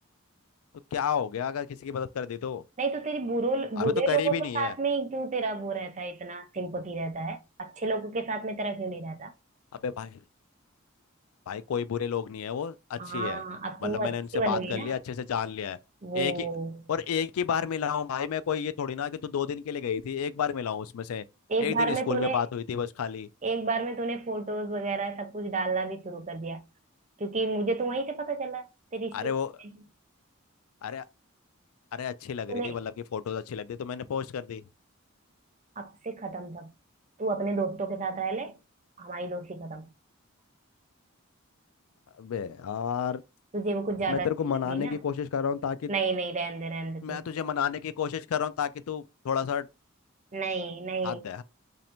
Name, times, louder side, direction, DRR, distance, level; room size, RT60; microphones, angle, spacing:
voice 1, 0.9-2.6 3.8-4.7 9.8-10.2 11.5-13.4 13.8-15.8 16.1-16.5 16.9-21.2 21.6-23.3 29.1-29.5 30.8-31.0 31.9-34.6 42.2-43.2 44.1-45.9 47.0-49.7 51.0-51.4, left 7 dB, 80° left, 0.4 m, -31 dB
voice 2, 2.8-9.3 13.0-15.0 16.0-16.8 21.5-22.4 23.4-26.6 27.2-28.7 28.9-29.3 29.6-29.7 32.5-32.8 35.8-36.7 37.2-38.6 39.0-39.9 43.5-44.3 44.7-45.0 45.9-47.3 50.3-51.2, right 3 dB, 35° right, 0.6 m, -31 dB
3.2 x 2.7 x 4.3 m
head